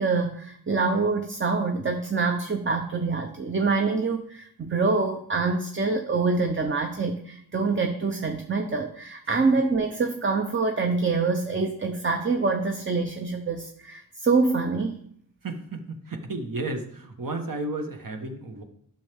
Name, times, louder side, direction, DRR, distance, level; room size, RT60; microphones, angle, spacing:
voice 1, 0.0-15.0, right 4 dB, 30° right, 4 dB, 0.7 m, -25 dB
voice 2, 15.4-18.6, right 2 dB, 60° right, 5 dB, 1.3 m, -33 dB
11.5 x 6.4 x 3.5 m, 0.65 s
wide cardioid pair, 95°, 37 cm